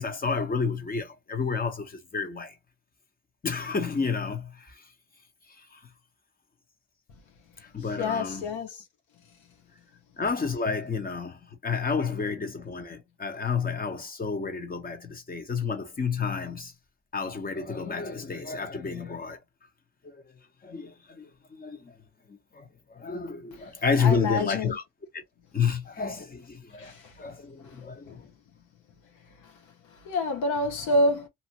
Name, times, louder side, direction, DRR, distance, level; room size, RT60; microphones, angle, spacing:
voice 1, 0.0-2.5 3.4-4.8 5.6-5.8 7.7-8.6 10.2-16.7 17.1-19.4 20.0-20.2 20.6-21.9 22.3-24.8 25.1-25.2 25.5-28.2, left 5 dB, 30° left, 1.0 m, -30 dB
voice 2, 8.0-8.8 24.0-24.7 26.8-26.9 28.1-28.2 30.1-31.3, left 1 dB, 85° left, 1.0 m, -27 dB
2.9 x 2.4 x 2.9 m
cardioid pair, 90°, 30 cm